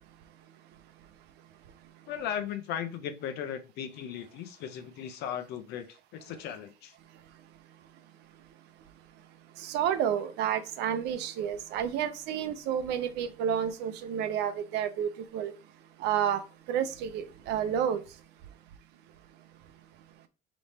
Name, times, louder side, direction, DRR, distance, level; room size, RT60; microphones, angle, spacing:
voice 1, 2.1-6.9, left 9 dB, 85° left, 0.7 m, -37 dB
voice 2, 9.6-15.5 16.0-16.4 16.7-18.0, right 9 dB, 90° right, 0.6 m, -30 dB
3.4 x 3.1 x 4.1 m
cardioid pair, 110°, 17 cm